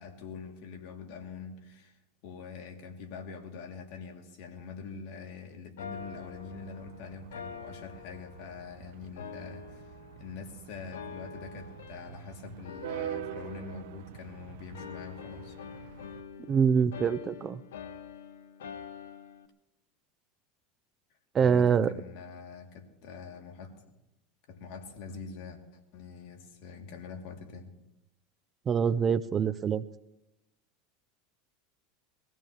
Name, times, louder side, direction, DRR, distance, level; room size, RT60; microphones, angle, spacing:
voice 1, 0.0-9.9 10.1-15.6 21.4-23.7 24.5-27.7, left 5 dB, 65° left, 3 dB, 2.6 m, -44 dB
sound 1, 5.8-8.7 9.2-10.5 10.9-12.3 12.6-14.4 14.7-19.5, left 7 dB, 85° left, 1.0 m, -46 dB
sound 2, 6.0-16.2, right 10 dB, 70° right, 0.8 m, -45 dB
voice 2, 16.5-17.6 21.3-21.9 28.7-29.8, right 7 dB, 30° right, 14 dB, 0.6 m, -25 dB
23.5 x 15.5 x 3.0 m, 0.91 s
hypercardioid pair, 100°, 0 cm